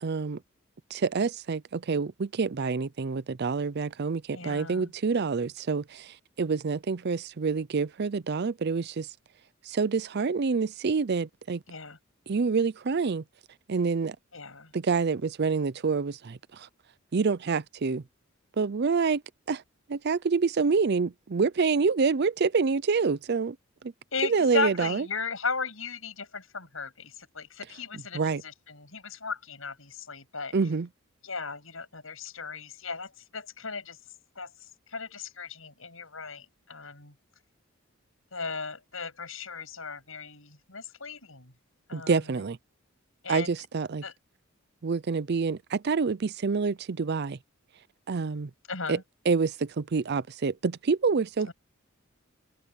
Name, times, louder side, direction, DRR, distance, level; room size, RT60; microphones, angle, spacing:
voice 1, 0.0-0.4 0.9-9.1 9.7-11.6 12.3-13.2 13.7-14.2 14.7-16.7 17.1-18.0 18.6-19.2 19.5-19.6 19.9-23.6 23.8-23.9 24.2-25.1 27.9-28.4 30.5-30.9 41.9-42.6 43.3-44.0 44.8-47.4 48.1-48.5 48.9-49.0 49.3-51.5, right 5 dB, 50° right, 0.5 m, -27 dB
voice 2, 4.3-4.9 11.7-12.0 14.3-14.7 24.1-30.5 31.2-34.0 34.4-34.5 34.9-37.1 38.3-41.5 41.9-42.2 43.2-43.5 44.0-44.1 48.7-49.0 51.4-51.5, left 5 dB, 70° left, 7.9 m, -36 dB
head